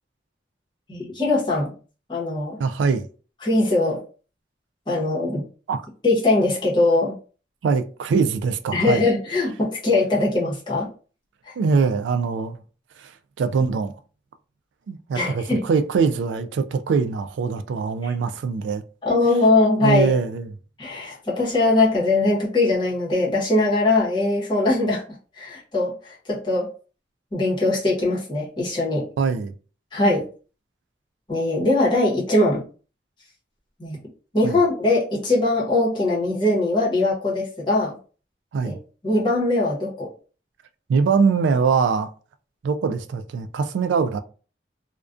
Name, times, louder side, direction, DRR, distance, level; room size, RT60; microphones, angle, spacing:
voice 1, 0.9-1.7 2.1-2.6 3.4-4.0 4.9-5.4 6.0-7.1 8.7-10.9 15.1-15.6 18.0-18.1 19.0-20.1 20.8-25.0 25.4-26.7 27.3-29.1 29.9-30.2 31.3-32.6 33.8-34.0 34.3-38.0 38.6-38.7 39.0-40.1, left 2 dB, 25° left, 0.8 m, -21 dB
voice 2, 2.6-3.1 5.7-5.8 7.6-9.0 11.6-12.6 13.0-13.1 13.4-13.9 14.9-18.8 19.8-20.5 29.2-29.5 34.4-34.6 38.5-38.8 40.9-42.1 42.6-44.2, right 5 dB, 80° right, 0.3 m, -22 dB
2.3 x 2.1 x 2.4 m
head